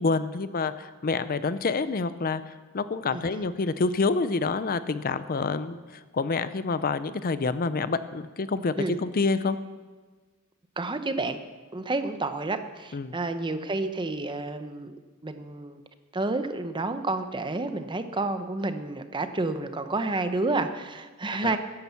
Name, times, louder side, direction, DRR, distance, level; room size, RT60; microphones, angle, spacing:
voice 1, 0.0-5.8 6.1-9.6 12.9-13.2 21.4-21.5, left 4 dB, 40° left, 13 dB, 0.5 m, -27 dB
voice 2, 10.8-11.4 11.7-15.0 15.2-15.8 16.1-21.6, right 2 dB, 20° right, 9 dB, 0.8 m, -30 dB
13.5 x 10.5 x 7.1 m, 1.3 s
head